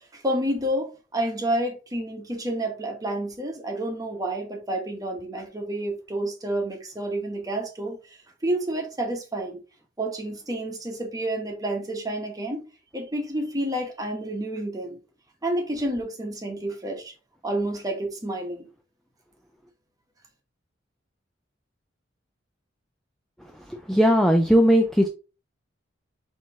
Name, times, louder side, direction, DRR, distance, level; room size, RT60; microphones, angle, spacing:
voice 1, 0.0-9.6 10.0-12.7 12.9-15.0 15.4-17.1 17.4-18.7, right 1 dB, 20° right, 1.0 m, -29 dB
voice 2, 23.7-25.1, equal, ahead, 0.3 m, -18 dB
4.3 x 3.0 x 3.5 m
head